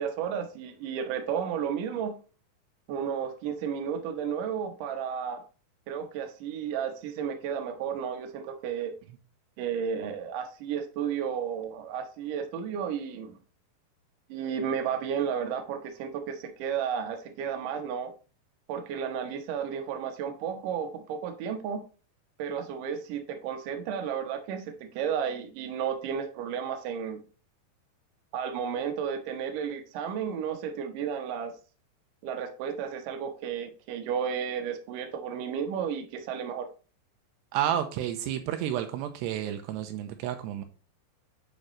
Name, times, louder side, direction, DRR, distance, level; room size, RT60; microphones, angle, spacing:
voice 1, 0.0-2.1 2.9-5.4 5.9-8.9 9.6-13.4 14.3-18.1 18.7-21.8 22.4-27.2 28.3-31.5 32.2-36.7, right 7 dB, 70° right, 2.2 m, -33 dB
voice 2, 37.5-40.6, right 11 dB, 85° right, 2.8 m, -31 dB
8.8 x 5.3 x 3.1 m
omnidirectional pair, 5.0 m